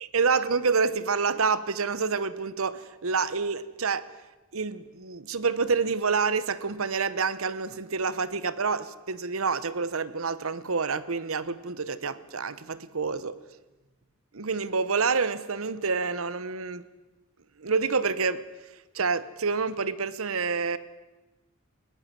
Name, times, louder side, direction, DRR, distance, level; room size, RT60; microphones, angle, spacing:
voice 1, 0.1-4.1 4.5-13.4 14.3-16.8 17.6-18.4 18.9-20.8, right 5 dB, 75° right, 1.0 m, -28 dB
21.5 x 18.0 x 7.5 m
head